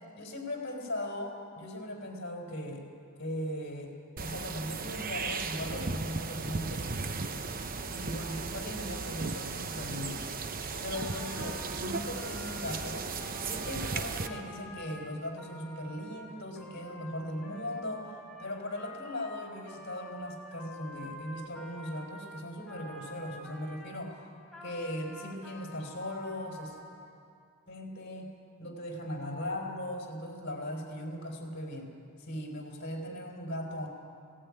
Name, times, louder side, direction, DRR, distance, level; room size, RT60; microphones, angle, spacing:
voice 1, 0.2-2.9 3.2-6.9 7.9-10.2 10.8-13.1 13.4-24.2 24.6-26.8 27.7-31.9 32.2-33.9, left 1 dB, 50° left, 2 dB, 4.3 m, -38 dB
sound 1, 4.2-14.3, right 4 dB, 40° right, 0.9 m, -36 dB
Trumpet, 10.9-24.0 24.5-27.0, equal, ahead, 3.5 m, -49 dB
18.5 x 17.0 x 9.8 m, 2.3 s
head